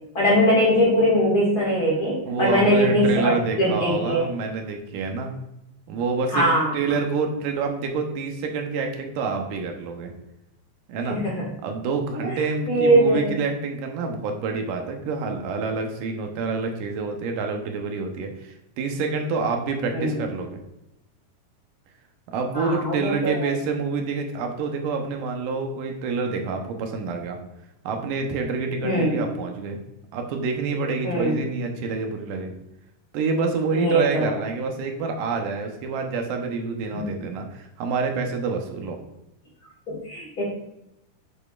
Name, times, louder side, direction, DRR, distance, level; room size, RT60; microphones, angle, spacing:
voice 1, 0.1-3.3 3.6-4.2 6.3-6.7 11.1-11.5 12.2-13.3 19.9-20.2 22.5-23.5 28.8-29.2 31.0-31.4 33.7-34.3 36.9-37.1 39.9-40.4, equal, 35° left, -5 dB, 2.2 m, -21 dB
voice 2, 2.3-5.3 5.9-6.5 6.7-10.1 10.9-11.2 11.6-20.6 22.3-27.4 27.8-29.8 30.1-32.5 33.1-39.0, right 4 dB, 90° right, 3 dB, 2.6 m, -27 dB
8.7 x 6.9 x 2.4 m, 0.88 s
omnidirectional pair, 3.7 m